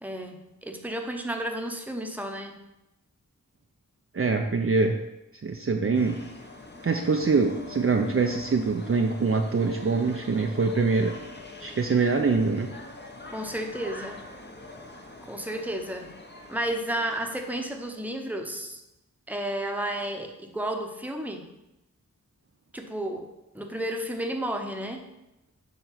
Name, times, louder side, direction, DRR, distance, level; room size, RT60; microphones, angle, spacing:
voice 1, 0.0-2.5 13.3-14.2 15.3-16.2 16.5-18.8 19.3-21.5 22.7-23.3 23.5-25.0, right 1 dB, 5° right, 3 dB, 0.9 m, -32 dB
voice 2, 4.1-4.9 5.4-6.1 6.8-11.1 11.6-12.7, right 4 dB, 40° right, 3 dB, 0.6 m, -24 dB
sound 1, 5.9-17.9, left 2 dB, 30° left, 0.9 m, -44 dB
7.0 x 3.3 x 5.8 m, 0.91 s
cardioid pair, 45°, 34 cm